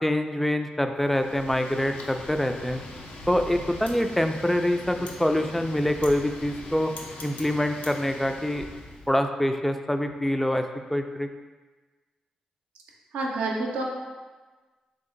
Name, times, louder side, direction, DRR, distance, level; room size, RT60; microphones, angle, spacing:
voice 1, 0.0-2.8 3.3-6.9 7.2-8.7 9.1-10.7 10.9-11.3, left 1 dB, 5° left, 6 dB, 0.3 m, -25 dB
Wind, 1.0-9.1, left 2 dB, 75° left, 0.5 m, -41 dB
voice 2, 13.1-13.8, right 2 dB, 85° right, -2 dB, 0.5 m, -28 dB
3.4 x 2.7 x 3.7 m, 1.3 s
supercardioid pair, 40°, 3 cm